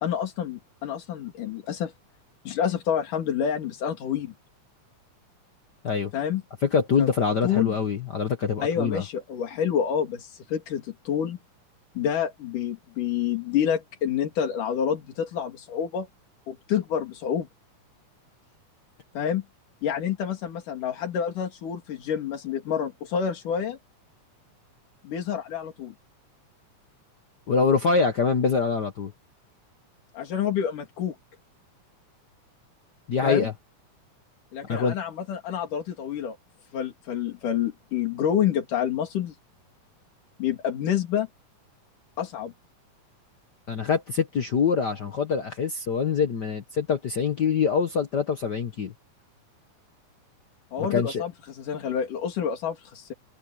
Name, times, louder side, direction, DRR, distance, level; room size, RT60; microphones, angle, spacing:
voice 1, 0.0-1.9 2.5-4.3 6.1-6.4 7.0-7.1 7.4-7.8 8.6-11.4 12.0-16.1 16.5-17.5 19.2-19.4 19.8-23.8 25.0-25.9 30.1-31.2 33.2-33.5 34.5-36.4 36.7-39.3 40.4-41.3 42.2-42.5 50.7-53.1, left 8 dB, 90° left, 3.9 m, -28 dB
voice 2, 6.6-9.0 27.5-29.1 33.1-33.5 34.7-34.9 43.7-48.9 50.8-51.3, left 5 dB, 65° left, 1.0 m, -24 dB
open air
omnidirectional pair, 3.6 m